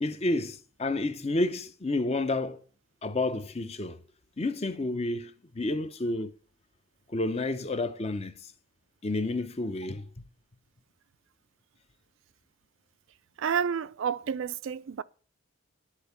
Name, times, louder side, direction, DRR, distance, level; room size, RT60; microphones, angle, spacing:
voice 1, 0.0-2.6 3.0-4.0 4.4-6.3 7.1-8.5 9.0-10.3, left 2 dB, 30° left, 0.6 m, -30 dB
voice 2, 13.4-15.0, right 7 dB, 60° right, 0.3 m, -30 dB
9.9 x 4.4 x 6.9 m
head